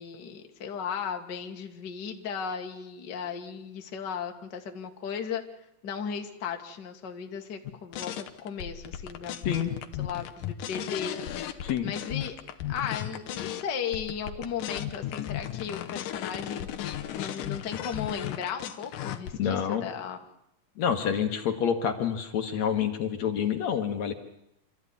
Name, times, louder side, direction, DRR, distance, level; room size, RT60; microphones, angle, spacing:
voice 1, 0.0-5.4 5.8-9.7 10.0-11.4 11.8-12.4 12.7-16.7 17.1-20.2, left 7 dB, 40° left, 4 dB, 1.9 m, -36 dB
sound 1, 7.6-13.6 13.9-19.3, left 11 dB, 90° left, 2.7 m, -35 dB
voice 2, 11.6-11.9 19.4-19.9 20.8-24.1, left 8 dB, 65° left, 6 dB, 2.5 m, -28 dB
26.5 x 14.0 x 9.8 m, 0.81 s
omnidirectional pair, 3.6 m